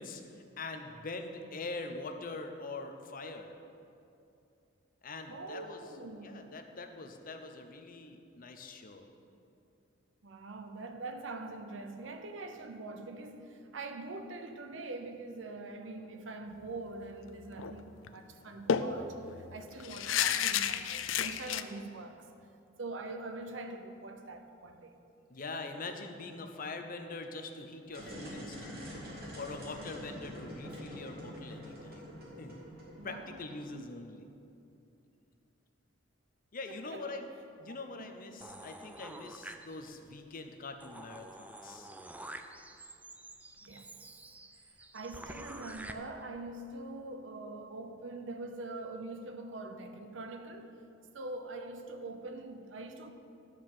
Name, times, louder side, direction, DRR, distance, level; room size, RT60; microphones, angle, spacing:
voice 1, 0.0-3.5 5.0-5.8 6.2-9.1 25.3-29.0 29.3-32.6 33.0-34.3 36.5-37.3 37.6-41.9, left 3 dB, 45° left, 6 dB, 0.8 m, -43 dB
voice 2, 5.3-6.5 10.2-22.3 22.8-24.9 33.0-34.0 36.7-37.2 37.7-38.1 38.4-38.5 43.6-44.0 44.9-50.8 51.1-53.1, right 2 dB, 75° right, 6 dB, 0.8 m, -44 dB
sound 1, 17.5-17.8 18.1-18.2 18.7-21.6, left 8 dB, 85° left, 0.4 m, -31 dB
sound 2, 27.9-33.7, equal, 55° right, 2.6 m, -45 dB
sound 3, 38.4-40.1 40.5-40.6 40.8-45.9, right 1 dB, 10° right, 0.4 m, -48 dB
12.0 x 4.7 x 7.5 m, 2.6 s
head